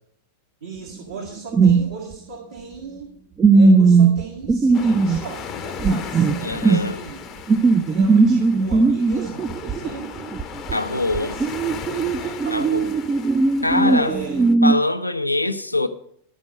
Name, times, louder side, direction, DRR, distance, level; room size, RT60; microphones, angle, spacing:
voice 1, 0.6-3.2 3.5-7.2 7.9-10.4 10.7-11.5 11.8-13.3 13.8-14.4, right 4 dB, 65° right, 1.8 m, -37 dB
sound 1, 1.5-1.8 2.1-2.2 3.4-5.2 5.8-6.9 7.5-10.8 11.1-14.7, right 4 dB, 20° right, 0.5 m, -17 dB
sound 2, 4.7-14.5, left 8 dB, 30° left, 0.8 m, -37 dB
voice 2, 6.4-7.0 10.7-11.4 12.5-12.9 13.6-14.1 14.6-15.9, left 2 dB, 85° left, 0.6 m, -23 dB
12.0 x 5.2 x 7.6 m
figure-of-eight pair, 90°, 0 cm